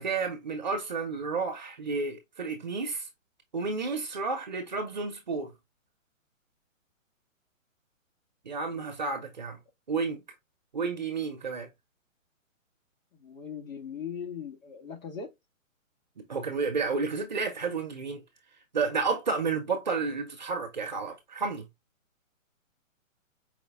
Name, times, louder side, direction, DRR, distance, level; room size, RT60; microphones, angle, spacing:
voice 1, 0.0-3.1 3.5-5.5 8.4-9.6 9.9-10.2 10.7-11.7 16.2-18.2 18.7-21.7, right 4 dB, 35° right, 0.8 m, -31 dB
voice 2, 13.2-15.3, left 7 dB, 75° left, 1.8 m, -39 dB
4.9 x 2.2 x 3.3 m
hypercardioid pair, 175°, 40 cm